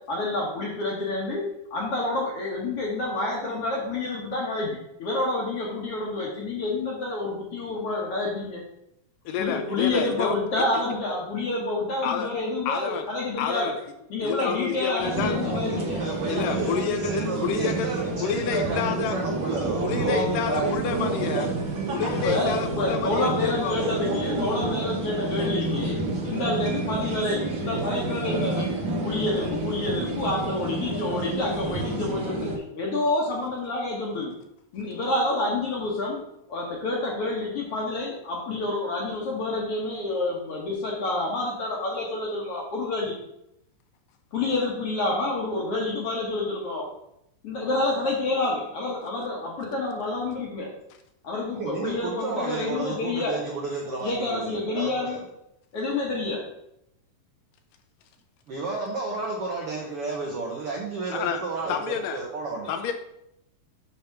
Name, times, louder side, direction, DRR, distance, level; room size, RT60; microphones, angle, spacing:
voice 1, 0.1-1.4 1.7-8.6 9.4-13.7 14.1-16.0 22.1-26.0 26.2-28.7 29.0-34.3 34.7-36.2 36.5-43.2 44.3-46.9 47.4-50.7 51.2-53.4 54.0-55.2 55.7-56.5, left 2 dB, 60° left, -2 dB, 1.6 m, -28 dB
voice 2, 9.3-10.8 12.0-12.3 12.7-13.1 13.4-13.8 14.2-15.4 16.3-17.9 18.2-19.2 19.8-21.5 21.9-23.8 61.1-61.4 61.7-62.2 62.7-62.9, left 8 dB, 80° left, 7 dB, 2.0 m, -29 dB
sound 1, 15.0-32.6, right 2 dB, 60° right, 1.3 m, -29 dB
voice 3, 15.6-21.1 51.5-55.2 58.5-62.8, right 3 dB, 80° right, -1 dB, 1.2 m, -32 dB
7.2 x 3.5 x 5.7 m, 0.80 s
omnidirectional pair, 4.0 m